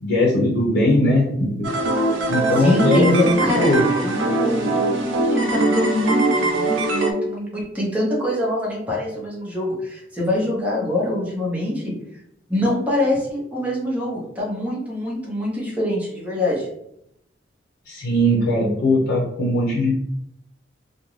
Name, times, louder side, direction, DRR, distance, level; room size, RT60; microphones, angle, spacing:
voice 1, 0.0-1.7 2.3-3.9 17.9-19.9, left 1 dB, 85° left, -3 dB, 0.6 m, -19 dB
sound 1, 1.6-7.1, right 2 dB, 75° right, 0.5 m, -22 dB
voice 2, 2.6-3.7 4.0-11.9 12.5-16.7, left 1 dB, 10° right, -6 dB, 0.8 m, -24 dB
2.5 x 2.2 x 3.0 m, 0.76 s
head